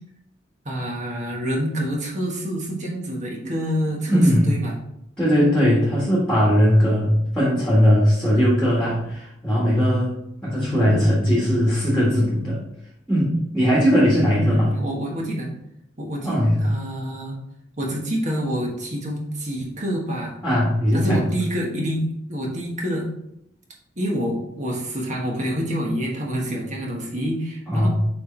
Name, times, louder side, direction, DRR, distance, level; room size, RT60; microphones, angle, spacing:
voice 1, 0.6-4.8 10.6-11.1 14.2-15.5 16.0-17.4 17.8-20.4 20.9-23.1 24.0-27.9, equal, 40° right, -1 dB, 1.4 m, -27 dB
voice 2, 4.1-4.5 5.2-10.1 10.4-12.6 13.1-14.7 16.2-16.5 20.4-21.2 27.7-27.9, equal, 5° left, -6 dB, 1.7 m, -19 dB
6.5 x 4.5 x 3.3 m, 0.80 s
head